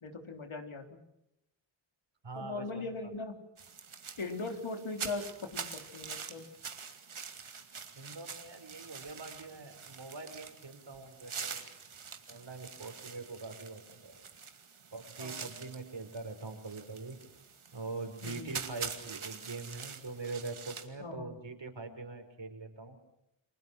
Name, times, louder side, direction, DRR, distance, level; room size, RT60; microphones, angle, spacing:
voice 1, 0.0-1.0 2.4-3.4 4.2-6.5 15.2-15.4 18.2-18.5 21.0-21.3, left 3 dB, 75° left, 4 dB, 3.8 m, -40 dB
voice 2, 2.2-2.9 7.9-11.7 12.3-14.3 14.9-17.2 17.7-23.0, right 3 dB, 60° right, 6 dB, 4.7 m, -43 dB
sound 1, 3.6-20.9, right 6 dB, 75° right, 2.4 m, -45 dB
30.0 x 23.0 x 6.3 m, 0.82 s
cardioid pair, 50°, 49 cm